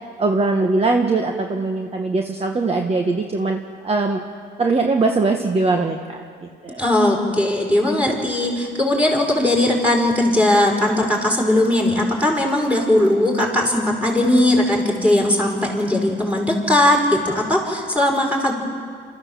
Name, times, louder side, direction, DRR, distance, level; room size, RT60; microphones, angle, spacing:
voice 1, 0.2-4.2 4.6-6.2 6.6-6.8, right 3 dB, 30° right, 3 dB, 1.4 m, -21 dB
voice 2, 6.8-18.5, left 1 dB, 5° right, -1 dB, 5.3 m, -18 dB
27.0 x 14.0 x 7.4 m, 2.1 s
cardioid pair, 90°, 20 cm